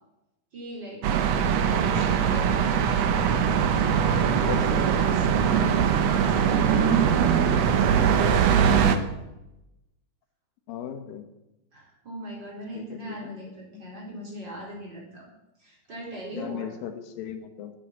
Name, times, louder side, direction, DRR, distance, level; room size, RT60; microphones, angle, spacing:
voice 1, 0.5-1.2 1.7-2.6 4.1-8.2 11.7-15.3 15.6-16.7, right 1 dB, 30° right, -3 dB, 4.6 m, -40 dB
sound 1, 1.0-9.0, right 7 dB, 70° right, 1.7 m, -21 dB
voice 2, 4.5-4.8 10.7-11.2 12.7-13.4 13.7-13.8 16.3-17.7, left 9 dB, 80° left, 8 dB, 2.8 m, -36 dB
10.5 x 8.5 x 8.9 m, 0.93 s
omnidirectional pair, 4.0 m